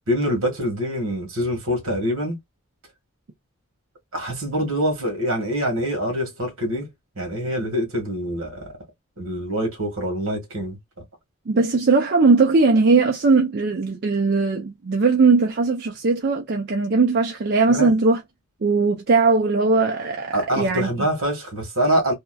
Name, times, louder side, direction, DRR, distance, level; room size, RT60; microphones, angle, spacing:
voice 1, 0.1-2.4 4.1-6.9 7.2-8.7 9.2-10.8 17.7-17.9 20.3-22.1, equal, 75° right, 1.5 m, -25 dB
voice 2, 11.5-18.2 18.6-20.9, right 4 dB, 50° right, 0.4 m, -19 dB
2.9 x 2.3 x 2.2 m
head